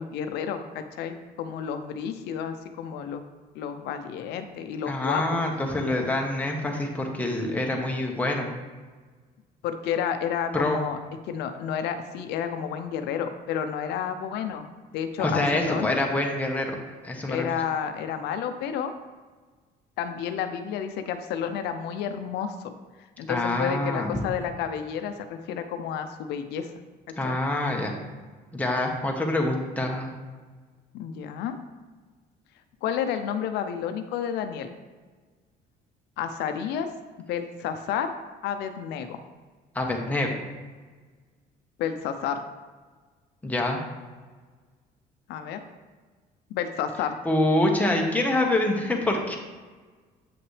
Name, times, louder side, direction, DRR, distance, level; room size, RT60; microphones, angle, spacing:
voice 1, 0.0-3.2 3.5-5.4 9.6-11.0 11.3-14.7 14.9-15.9 17.3-18.9 20.0-22.7 23.2-26.7 27.2-27.4 30.9-31.6 32.8-34.7 36.2-36.9 37.3-38.1 38.4-39.2 41.8-42.4 45.3-45.6 46.5-47.2, left 8 dB, 85° left, 8 dB, 0.5 m, -30 dB
voice 2, 4.9-8.5 10.5-10.8 15.2-16.7 17.0-17.5 23.3-24.1 27.2-27.9 28.5-30.1 39.7-40.3 43.4-43.8 47.2-49.4, left 1 dB, 10° left, 0 dB, 1.1 m, -26 dB
7.9 x 5.8 x 3.2 m, 1.4 s
cardioid pair, 110°, 17 cm